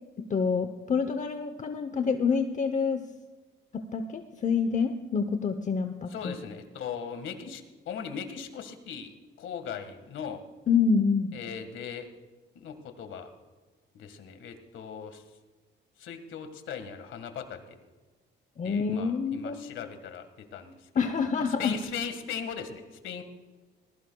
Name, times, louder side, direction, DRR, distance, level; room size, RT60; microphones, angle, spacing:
voice 1, 0.2-3.0 3.7-6.4 10.7-11.3 18.6-19.7 21.0-21.7, left 5 dB, 40° left, 7 dB, 0.8 m, -27 dB
voice 2, 6.1-10.4 11.3-12.1 12.5-13.3 13.9-15.2 16.0-17.8 18.6-23.2, left 7 dB, 75° left, 7 dB, 1.7 m, -39 dB
19.5 x 15.0 x 2.3 m, 1.3 s
cardioid pair, 90°, 20 cm